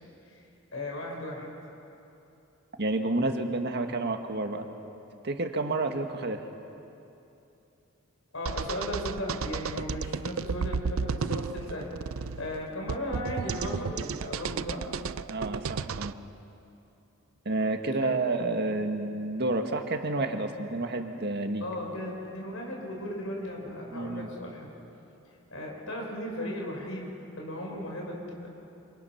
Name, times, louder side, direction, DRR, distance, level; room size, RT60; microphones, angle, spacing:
voice 1, 0.7-1.5 8.3-11.9 12.3-14.8 18.0-18.2 21.6-24.7 25.5-28.5, left 1 dB, 80° left, 0 dB, 5.1 m, -36 dB
voice 2, 2.8-4.7 5.2-6.4 15.3-16.2 17.5-21.6 23.9-24.3, right 2 dB, 55° right, 5 dB, 1.8 m, -30 dB
sound 1, 8.5-16.1, right 5 dB, 80° right, 0.5 m, -33 dB
27.5 x 27.0 x 5.9 m, 2.8 s
head